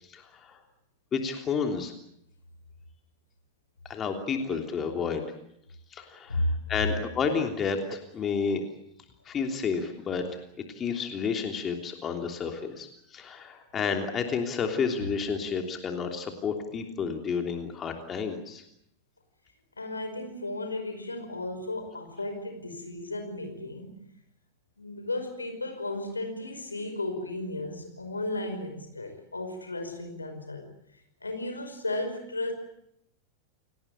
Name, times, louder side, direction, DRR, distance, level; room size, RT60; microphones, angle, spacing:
voice 1, 0.1-0.6 1.1-1.9 3.9-5.3 5.9-8.6 9.2-10.4 10.7-18.6, left 5 dB, 25° left, 4 dB, 3.2 m, -31 dB
voice 2, 19.8-24.1 24.8-30.7 30.9-32.5, left 2 dB, 80° left, 6 dB, 5.3 m, -34 dB
29.0 x 19.0 x 8.5 m, 0.76 s
figure-of-eight pair, 90°, 0 cm